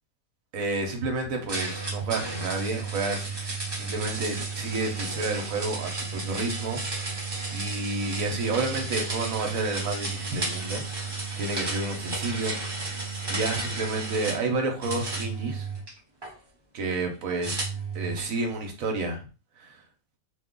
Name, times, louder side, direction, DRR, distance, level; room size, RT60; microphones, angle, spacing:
voice 1, 0.5-12.6 12.9-13.0 13.3-15.7 16.7-17.7 17.9-19.2 19.6-19.8, right 3 dB, 65° right, 3 dB, 1.1 m, -31 dB
sound 1, 1.5-14.4 14.8-16.3 17.4-18.4, right 3 dB, 40° right, 0.3 m, -33 dB
2.7 x 2.3 x 3.6 m, 0.34 s
omnidirectional pair, 1.6 m